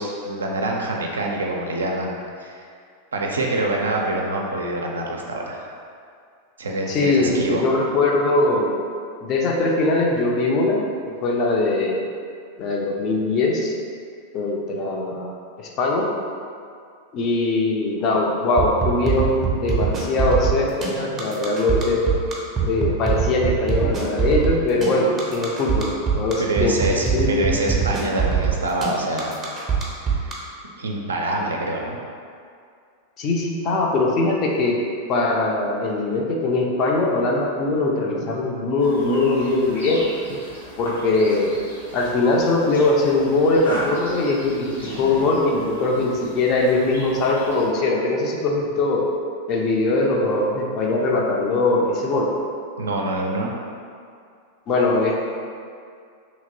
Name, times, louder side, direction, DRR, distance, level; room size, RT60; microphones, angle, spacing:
voice 1, 0.0-2.6 3.1-5.7 6.6-7.6 26.4-29.3 30.3-30.4 30.8-32.0 52.8-53.5, right 2 dB, 70° right, 0 dB, 0.4 m, -25 dB
voice 2, 6.9-8.8 9.2-12.1 12.6-13.7 14.3-15.3 15.6-16.1 17.1-22.1 22.6-25.9 26.1-26.8 27.1-27.5 33.2-34.8 35.1-40.4 40.8-41.5 41.9-49.0 49.5-52.3 54.7-55.2, left 2 dB, 35° left, -1 dB, 0.4 m, -21 dB
sound 1, 18.6-30.3, right 6 dB, 20° right, 0.5 m, -22 dB
sound 2, 38.8-47.7, equal, 80° left, 1.1 m, -37 dB
3.0 x 2.8 x 2.5 m, 2.3 s
figure-of-eight pair, 90°, 0 cm